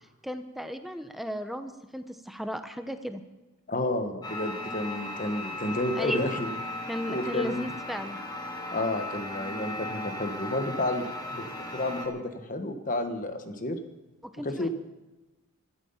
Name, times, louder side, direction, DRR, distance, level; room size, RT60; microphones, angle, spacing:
voice 1, 0.2-3.2 6.0-6.4 6.9-8.2 14.2-14.7, equal, ahead, 8 dB, 0.7 m, -35 dB
voice 2, 3.7-6.5 7.1-7.7 8.7-13.8 14.4-14.7, left 1 dB, 35° left, 8 dB, 1.4 m, -31 dB
sound 1, 4.2-12.1, left 1 dB, 20° left, 1.9 m, -37 dB
15.5 x 13.0 x 5.6 m, 1.1 s
head